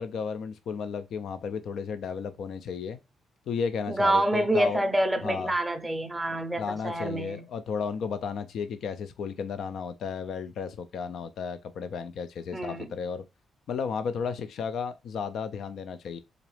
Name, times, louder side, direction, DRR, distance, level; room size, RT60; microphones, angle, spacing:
voice 1, 0.0-3.0 3.5-4.8 5.2-5.5 6.6-13.2 13.7-16.2, left 6 dB, 65° left, 0.3 m, -33 dB
voice 2, 3.9-7.5 12.5-12.8, right 1 dB, 10° right, 0.5 m, -27 dB
3.8 x 3.0 x 3.1 m
cardioid pair, 140°, 0 cm